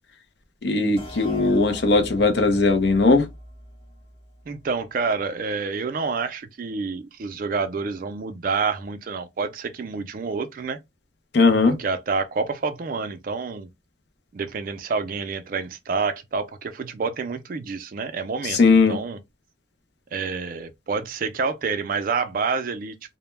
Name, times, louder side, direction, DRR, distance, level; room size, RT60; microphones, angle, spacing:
voice 1, 0.6-3.3 11.3-11.8 18.5-19.0, left 3 dB, 60° left, 0.5 m, -18 dB
sound 1, 1.0-4.5, left 1 dB, 30° left, 0.9 m, -41 dB
voice 2, 4.5-10.8 11.6-13.7 14.3-19.2 20.1-22.9, right 4 dB, 45° right, 0.3 m, -28 dB
2.1 x 2.1 x 3.1 m
head